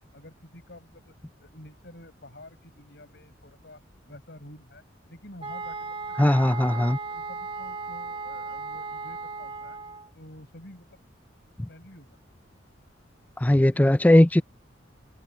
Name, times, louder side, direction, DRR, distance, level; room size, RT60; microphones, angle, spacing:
voice 1, 0.1-1.1 1.4-3.8 4.1-6.8 7.1-9.8 10.1-11.0 11.7-12.2 13.7-13.8, left 1 dB, 60° left, 7.6 m, -49 dB
sound 1, 5.4-10.1, right 4 dB, 30° right, 1.7 m, -36 dB
voice 2, 6.2-7.0 11.6-11.7 13.4-14.4, left 1 dB, 10° left, 0.4 m, -19 dB
head